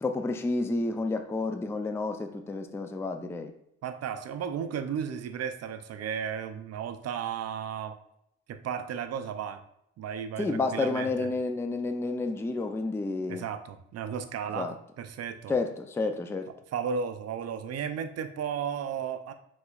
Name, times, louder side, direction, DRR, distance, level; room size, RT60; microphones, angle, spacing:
voice 1, 0.0-3.5 10.4-13.4 14.5-14.7 15.5-16.5, left 3 dB, 10° left, 7 dB, 0.4 m, -30 dB
voice 2, 3.8-7.9 8.5-9.6 10.0-11.3 13.3-14.7 15.0-15.6 16.7-19.3, right 7 dB, 55° right, 9 dB, 0.5 m, -34 dB
4.8 x 3.7 x 2.4 m, 0.77 s
cardioid pair, 90°, 30 cm